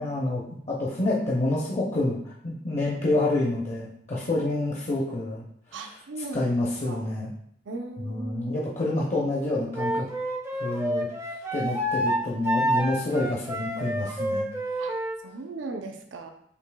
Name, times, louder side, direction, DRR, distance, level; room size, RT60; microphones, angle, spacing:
voice 1, 0.0-6.0 6.3-7.3 8.0-10.1 10.6-11.1 11.5-14.5, left 2 dB, 35° left, -4 dB, 0.6 m, -28 dB
voice 2, 5.7-6.6 6.8-7.0 7.7-8.7 14.8-14.9 15.2-16.3, right 2 dB, 70° right, 4 dB, 0.6 m, -38 dB
Wind instrument woodwind instrument, 9.7-15.2, equal, 15° right, 0.4 m, -28 dB
6.6 x 2.7 x 2.3 m, 0.70 s
head